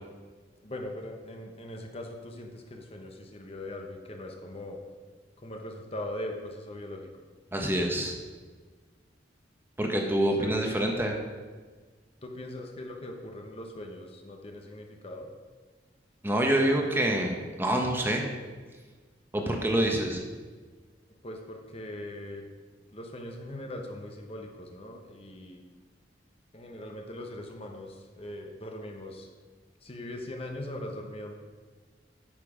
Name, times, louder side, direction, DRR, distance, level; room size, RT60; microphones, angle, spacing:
voice 1, 0.6-4.8 5.4-7.1 10.2-10.8 12.2-15.3 21.2-22.5 22.9-25.6 26.5-29.3 29.8-31.3, left 1 dB, 35° left, 2 dB, 0.9 m, -40 dB
voice 2, 7.5-8.1 9.8-11.2 16.2-18.3 19.3-20.2, right 1 dB, 10° right, 1 dB, 1.0 m, -26 dB
9.0 x 6.8 x 5.0 m, 1.4 s
head